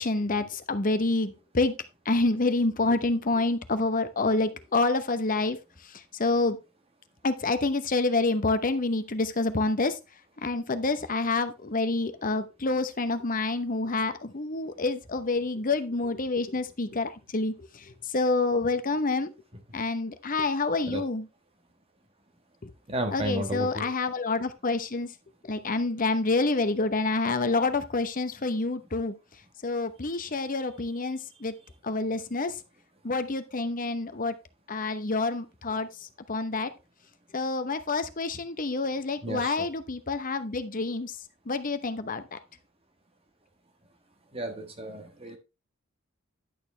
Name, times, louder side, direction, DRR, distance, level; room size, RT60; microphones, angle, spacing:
voice 1, 0.0-1.7 2.1-5.6 6.1-6.6 7.2-10.0 10.4-17.5 17.8-19.3 19.7-21.2 22.6-22.7 23.1-25.1 25.4-29.1 29.6-31.5 31.8-32.6 33.0-34.3 34.7-35.9 36.3-36.7 37.3-41.1 41.5-42.4, left 3 dB, 40° left, 10 dB, 0.9 m, -27 dB
voice 2, 22.9-23.9 39.2-39.7 44.3-45.4, right 1 dB, 25° right, 5 dB, 1.4 m, -33 dB
11.0 x 6.7 x 3.3 m, 0.26 s
head